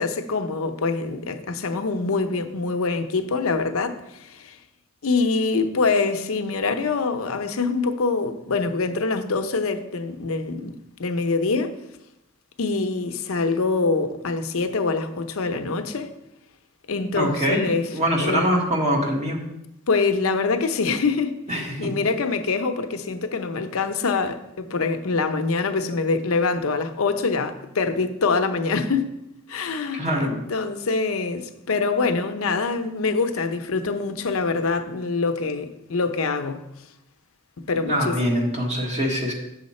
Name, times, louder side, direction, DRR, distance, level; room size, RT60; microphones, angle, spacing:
voice 1, 0.0-4.6 5.0-10.7 11.0-11.8 12.6-16.1 16.9-17.9 18.2-18.5 19.9-29.1 29.5-36.6 37.6-38.2, left 4 dB, 80° left, 0.7 m, -25 dB
voice 2, 17.1-17.7 17.9-19.4 21.5-21.9 29.9-30.3 37.9-39.3, equal, 30° right, 1.4 m, -23 dB
7.2 x 6.4 x 4.2 m
head